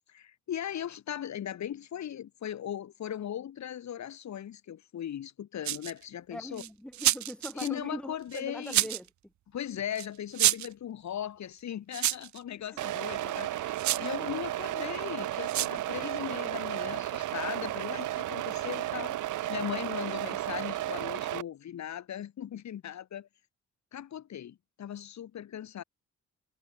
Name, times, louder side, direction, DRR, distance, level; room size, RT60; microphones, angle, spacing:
voice 1, 0.1-6.6 7.6-8.9 9.5-23.3 23.9-25.8, left 10 dB, 65° left, 7.2 m, -38 dB
sound 1, 5.6-6.0 6.6-7.7 8.3-9.1 10.0-10.1 10.3-10.7 11.9-12.4 13.8-14.1 15.5-15.8, right 13 dB, 65° right, 0.9 m, -28 dB
voice 2, 6.3-9.3 12.7-12.9, left 1 dB, 5° left, 5.0 m, -42 dB
sound 2, 12.8-21.4, right 14 dB, 85° right, 3.9 m, -33 dB
cardioid pair, 90°, 30 cm